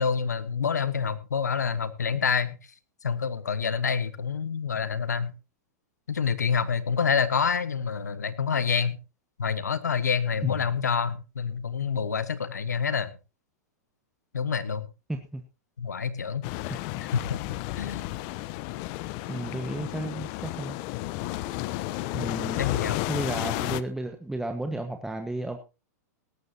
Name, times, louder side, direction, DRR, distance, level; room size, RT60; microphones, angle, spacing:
voice 1, 0.0-2.6 3.0-5.3 6.1-9.0 9.4-13.1 14.3-14.9 15.8-16.4 17.1-17.4 17.8-18.0 22.6-23.0, left 6 dB, 90° left, 14 dB, 1.3 m, -27 dB
voice 2, 15.1-15.4 16.7-16.8 19.3-20.8 22.1-22.7 23.1-25.6, right 1 dB, 5° right, 5 dB, 1.4 m, -33 dB
sound 1, 16.4-23.8, left 16 dB, 50° left, 0.8 m, -32 dB
17.5 x 13.5 x 2.9 m, 0.30 s
hypercardioid pair, 105°, 9 cm